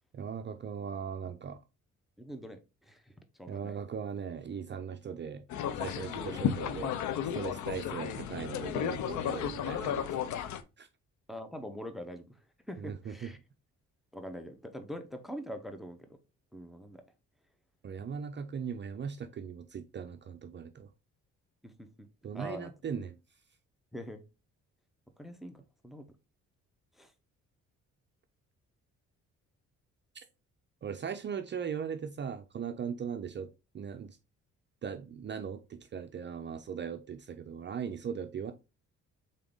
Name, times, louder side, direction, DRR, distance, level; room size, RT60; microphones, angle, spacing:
voice 1, 0.1-1.6 3.5-5.4 5.7-7.0 7.3-10.1 10.8-10.9 12.8-13.3 17.8-20.9 22.2-23.1 30.1-30.2 30.8-33.5 33.7-34.2 34.8-38.5, right 7 dB, 40° right, 0.5 m, -39 dB
voice 2, 2.2-3.8 6.1-6.4 11.3-13.4 14.1-16.2 16.5-17.0 21.6-22.1 22.3-22.7 23.9-24.2 25.2-26.1 26.9-27.1, equal, ahead, 0.7 m, -44 dB
sound 1, 5.5-10.6, left 9 dB, 75° left, 0.6 m, -34 dB
3.9 x 3.7 x 3.6 m
cardioid pair, 90°, 30 cm